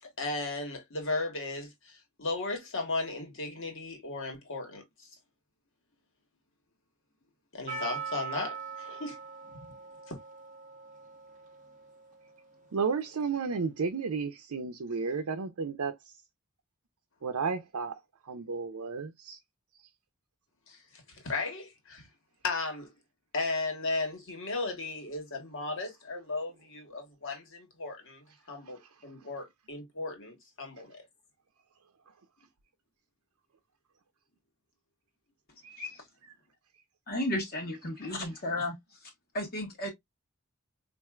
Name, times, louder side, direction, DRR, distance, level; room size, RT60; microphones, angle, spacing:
voice 1, 0.0-4.8 7.5-9.2 10.1-10.2 20.7-20.8 21.1-22.1 22.4-22.9 23.3-31.0, left 3 dB, 60° left, 1.3 m, -36 dB
Percussion, 7.7-12.6, right 5 dB, 35° right, 0.7 m, -42 dB
voice 2, 12.7-15.9 17.2-17.9 18.2-19.4 35.6-35.8, right 5 dB, 90° right, 0.6 m, -32 dB
voice 3, 37.1-38.7 39.0-39.9, left 1 dB, 45° left, 0.9 m, -34 dB
4.3 x 2.6 x 2.3 m
head